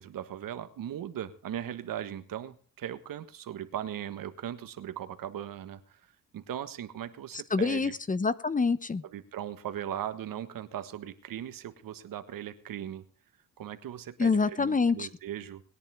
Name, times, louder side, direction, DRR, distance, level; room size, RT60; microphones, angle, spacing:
voice 1, 0.0-7.9 9.0-13.0 13.6-15.6, right 10 dB, 75° right, 11 dB, 1.6 m, -38 dB
voice 2, 7.5-9.0 14.2-15.1, left 4 dB, 25° left, 16 dB, 0.9 m, -26 dB
20.5 x 10.5 x 3.6 m, 0.43 s
cardioid pair, 100°, 33 cm